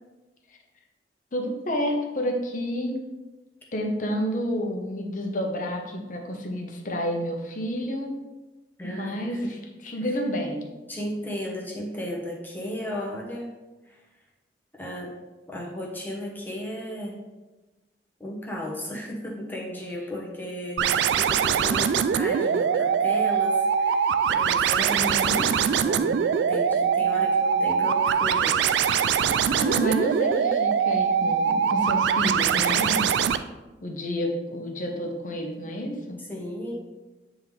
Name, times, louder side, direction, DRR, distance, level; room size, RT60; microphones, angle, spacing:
voice 1, 1.3-3.0 3.7-8.1 8.8-9.6 9.8-10.7 24.8-25.5 29.3-33.1 33.8-36.2, equal, 45° left, 2 dB, 0.9 m, -30 dB
voice 2, 8.8-9.5 10.1-10.2 10.9-13.5 13.9-14.0 14.7-15.1 15.5-17.2 18.2-28.6 36.2-36.7, left 1 dB, 10° left, -3 dB, 1.0 m, -35 dB
sound 1, 20.8-33.4, right 7 dB, 85° right, 0.3 m, -23 dB
8.8 x 3.7 x 3.2 m, 1.1 s
head